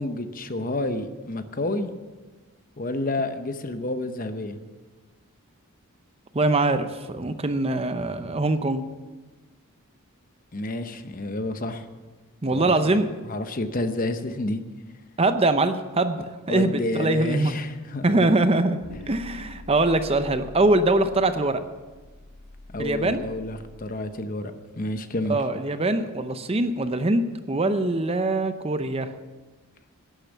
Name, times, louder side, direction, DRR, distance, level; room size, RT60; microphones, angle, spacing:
voice 1, 0.0-1.9 2.8-4.6 10.5-11.9 12.4-13.0 13.3-14.6 16.5-18.4 22.7-25.4, left 2 dB, 40° left, 9 dB, 0.8 m, -30 dB
voice 2, 6.3-8.8 12.4-13.1 15.2-16.2 16.5-17.5 18.0-18.8 19.1-21.6 22.8-23.2 25.3-29.1, right 2 dB, 25° right, 10 dB, 0.6 m, -23 dB
sound 1, 18.8-23.9, left 2 dB, 80° left, 3.7 m, -44 dB
11.5 x 10.5 x 7.2 m, 1.3 s
head